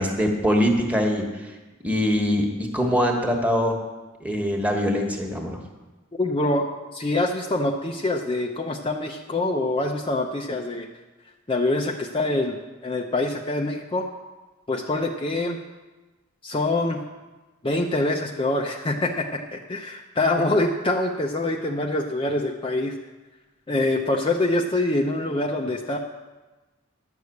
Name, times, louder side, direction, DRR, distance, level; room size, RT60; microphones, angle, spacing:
voice 1, 0.0-1.5 1.8-3.8 4.2-5.6, equal, 5° right, 2 dB, 1.4 m, -23 dB
voice 2, 6.1-6.7 6.9-10.9 11.5-12.6 12.8-14.1 14.7-15.6 16.4-17.0 17.6-22.9 23.7-26.0, left 2 dB, 25° left, 1 dB, 0.6 m, -25 dB
11.0 x 6.6 x 8.2 m, 1.2 s
head